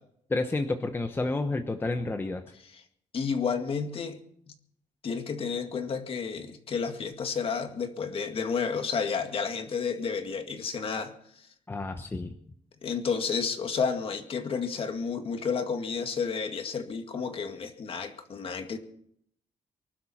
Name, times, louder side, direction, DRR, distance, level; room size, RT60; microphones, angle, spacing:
voice 1, 0.3-2.4 11.7-12.3, left 2 dB, 15° left, 6 dB, 1.0 m, -30 dB
voice 2, 3.1-4.2 5.0-11.1 12.8-18.8, left 5 dB, 45° left, 6 dB, 2.0 m, -31 dB
24.5 x 12.0 x 4.3 m, 0.67 s
cardioid pair, 150°, 13 cm